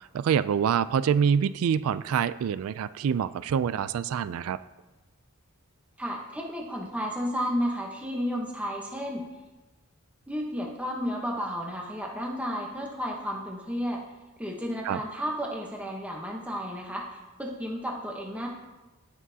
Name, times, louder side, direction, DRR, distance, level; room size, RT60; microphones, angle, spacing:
voice 1, 0.1-4.6 14.8-15.0, right 7 dB, 75° right, 16 dB, 0.3 m, -26 dB
voice 2, 6.0-9.3 10.3-14.0 14.4-18.5, equal, 5° right, -1 dB, 0.9 m, -32 dB
18.0 x 6.2 x 2.8 m, 1.2 s
head